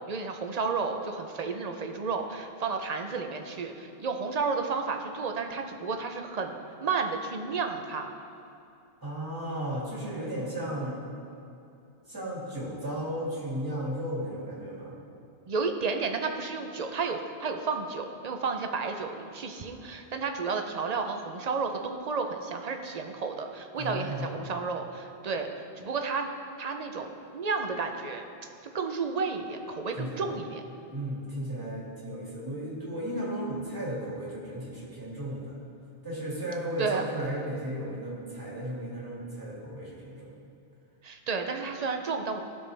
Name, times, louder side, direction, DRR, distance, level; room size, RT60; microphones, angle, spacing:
voice 1, 0.1-8.1 15.5-25.5 25.8-26.3 26.6-28.2 28.7-30.6 36.8-37.0 41.0-42.4, right 4 dB, 45° right, 5 dB, 0.7 m, -32 dB
voice 2, 9.0-11.0 12.1-14.9 23.8-24.4 29.9-30.4 30.9-35.6 36.0-40.3, right 1 dB, 20° right, -6 dB, 2.3 m, -35 dB
15.5 x 6.4 x 3.4 m, 2.7 s
omnidirectional pair, 1.1 m